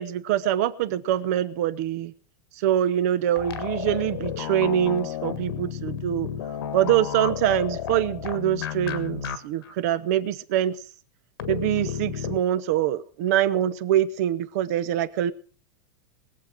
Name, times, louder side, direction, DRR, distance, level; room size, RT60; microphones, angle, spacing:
voice 1, 0.0-2.1 2.6-6.3 6.7-10.8 11.5-15.3, right 11 dB, 40° right, 16 dB, 0.8 m, -24 dB
sound 1, 3.4-9.4 9.6-9.7 11.4-12.4, left 9 dB, 75° left, 1.5 m, -32 dB
21.5 x 7.6 x 5.0 m, 0.42 s
supercardioid pair, 175°, 12 cm